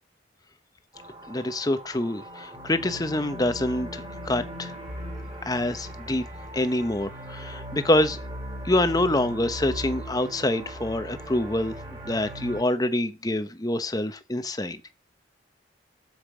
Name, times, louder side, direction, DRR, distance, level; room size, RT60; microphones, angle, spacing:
sound 1, 0.9-12.6, equal, 25° right, 4.2 m, -39 dB
voice 1, 1.3-4.7 5.5-6.2 6.5-8.2 8.6-11.7 12.0-14.8, left 1 dB, 20° left, 0.9 m, -26 dB
8.5 x 7.3 x 6.2 m
head